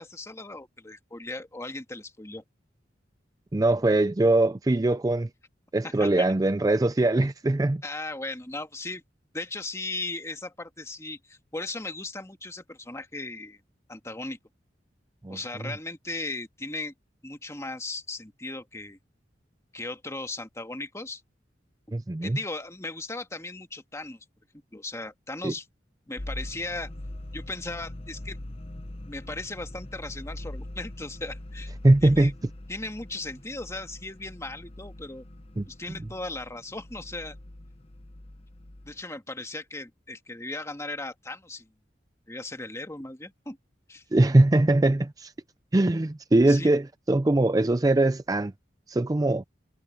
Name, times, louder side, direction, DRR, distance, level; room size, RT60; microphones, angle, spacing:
voice 1, 0.0-2.4 5.8-6.3 7.8-9.0 9.3-13.6 13.9-14.4 15.3-16.9 17.2-19.0 19.7-21.2 22.2-24.2 24.7-25.7 26.1-26.9 27.3-28.4 29.1-31.7 32.0-32.3 32.7-35.2 35.7-37.4 38.8-41.7 42.3-43.6 43.9-44.0 46.5-46.7, left 2 dB, 15° left, 1.7 m, -37 dB
voice 2, 3.5-5.3 5.7-7.8 15.2-15.7 21.9-22.4 25.4-25.5 31.8-32.3 35.6-35.7 44.1-45.3 45.7-48.5 48.9-49.4, right 2 dB, 20° right, 0.4 m, -22 dB
sound 1, 26.2-39.0, left 1 dB, 35° left, 0.9 m, -42 dB
head